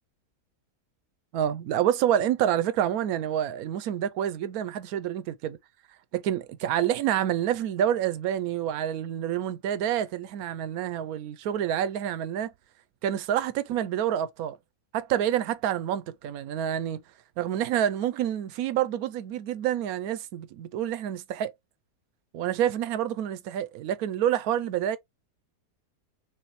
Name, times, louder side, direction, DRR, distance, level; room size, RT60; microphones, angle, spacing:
voice 1, 1.3-5.6 6.1-12.5 13.0-14.6 14.9-17.0 17.4-21.5 22.3-25.0, right 10 dB, 70° right, 1.0 m, -28 dB
6.3 x 2.7 x 3.1 m
omnidirectional pair, 1.8 m